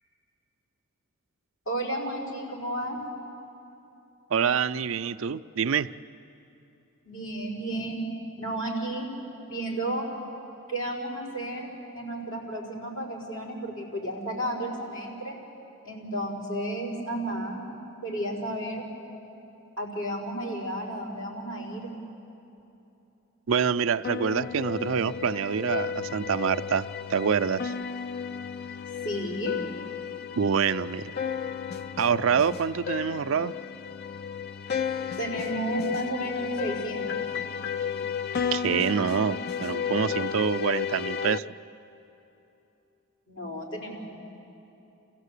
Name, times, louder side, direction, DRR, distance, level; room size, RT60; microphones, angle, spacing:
voice 1, 1.6-3.0 7.0-8.0 8.4-9.1 9.5-10.1 10.7-11.7 11.9-15.3 15.8-17.6 18.0-18.9 19.8-21.9 29.0-29.6 35.2-37.2 43.3-44.1, right 1 dB, 75° left, -3 dB, 4.9 m, -32 dB
voice 2, 4.3-5.9 23.5-27.7 30.4-31.1 32.0-33.5 38.5-41.4, right 6 dB, 70° right, 12 dB, 0.5 m, -26 dB
sound 1, 24.0-41.4, left 7 dB, 45° left, 0.5 m, -33 dB
27.5 x 16.0 x 8.3 m, 2.9 s
head